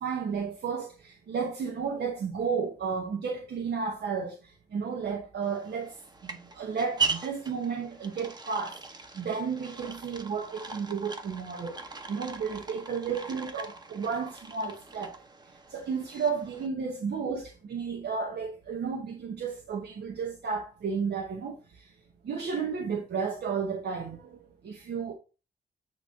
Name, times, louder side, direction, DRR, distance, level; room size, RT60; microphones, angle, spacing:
voice 1, 0.0-5.9 6.2-8.8 9.1-11.7 12.1-15.2 15.7-21.9 22.2-25.1, right 5 dB, 85° right, 1.1 m, -33 dB
sound 1, 5.4-16.7, right 4 dB, 25° right, 0.9 m, -39 dB
8.9 x 3.2 x 5.7 m
wide cardioid pair, 120°, 17 cm